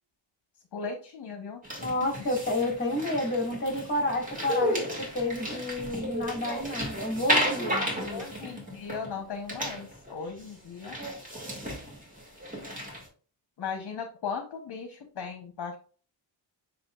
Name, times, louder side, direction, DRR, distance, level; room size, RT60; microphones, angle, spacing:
voice 1, 0.7-1.6 8.1-11.0 13.6-15.8, left 5 dB, 60° left, 5 dB, 0.9 m, -37 dB
sound 1, 1.6-9.2 9.5-10.1 10.4-10.5 10.8-13.0, equal, 15° right, 1.9 m, -33 dB
voice 2, 1.8-8.2, left 1 dB, 25° left, 0 dB, 1.8 m, -30 dB
7.1 x 2.9 x 2.4 m, 0.40 s
wide cardioid pair, 100°, 46 cm